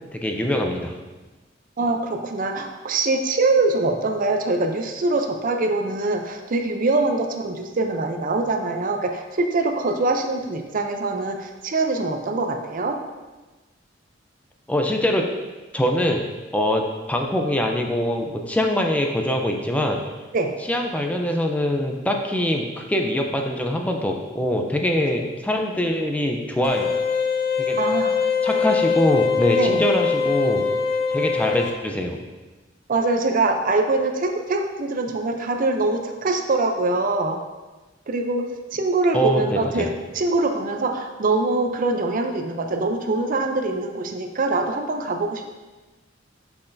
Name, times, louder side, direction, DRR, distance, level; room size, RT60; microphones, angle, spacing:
voice 1, 0.1-0.9 14.7-15.3 15.7-16.2 16.5-20.0 20.7-26.9 27.6-27.8 28.4-30.7 31.1-32.2 39.1-39.9, left 1 dB, 10° left, 2 dB, 0.4 m, -23 dB
voice 2, 1.8-13.0 20.3-20.5 27.8-28.2 29.6-29.9 32.9-37.4 38.1-45.6, right 2 dB, 45° right, 5 dB, 0.5 m, -23 dB
sound 1, 26.6-31.7, left 5 dB, 55° left, 0.5 m, -22 dB
6.3 x 5.7 x 2.6 m, 1.2 s
head